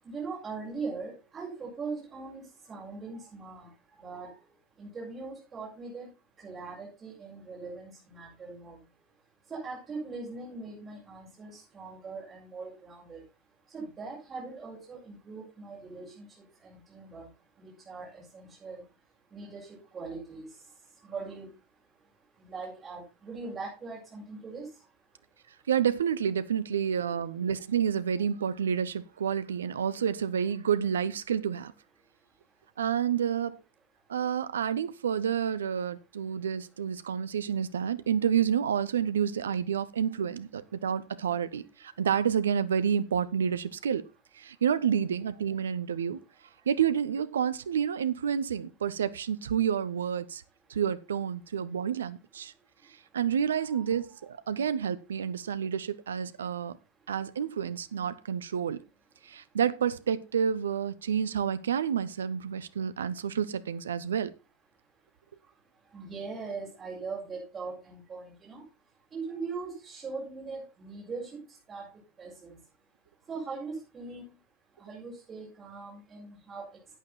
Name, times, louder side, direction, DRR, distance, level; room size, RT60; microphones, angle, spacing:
voice 1, 0.0-3.7 4.0-4.3 4.8-6.1 6.4-8.8 9.5-13.2 13.7-16.3 16.6-17.3 17.6-18.8 19.3-20.5 21.0-21.5 22.4-24.7 27.1-27.2 53.6-54.0 65.9-68.6 69.1-71.3 71.7-71.9 72.2-72.6 73.3-74.3 74.8-76.7, right 4 dB, 20° right, 6.6 m, -40 dB
voice 2, 25.7-31.7 32.8-33.6 34.1-44.0 44.3-46.2 46.7-50.4 50.7-52.5 53.1-56.8 57.1-58.8 59.2-64.3, right 8 dB, 65° right, 0.9 m, -29 dB
11.0 x 9.2 x 4.3 m
figure-of-eight pair, 90°, 0 cm